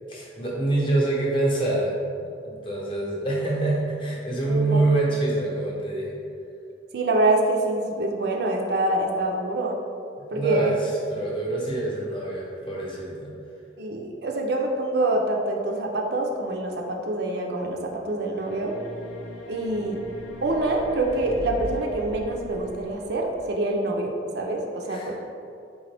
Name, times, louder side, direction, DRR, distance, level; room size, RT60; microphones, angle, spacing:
voice 1, 0.1-6.2 10.2-13.3 24.9-25.1, right 2 dB, 25° left, -4 dB, 0.8 m, -26 dB
voice 2, 4.5-4.9 6.9-9.8 10.3-10.7 13.8-18.8 19.5-20.0 20.4-25.2, right 2 dB, 55° right, 1 dB, 0.4 m, -26 dB
sound 1, 18.4-23.5, left 1 dB, 80° left, 0.5 m, -39 dB
4.0 x 3.8 x 3.3 m, 2.5 s
head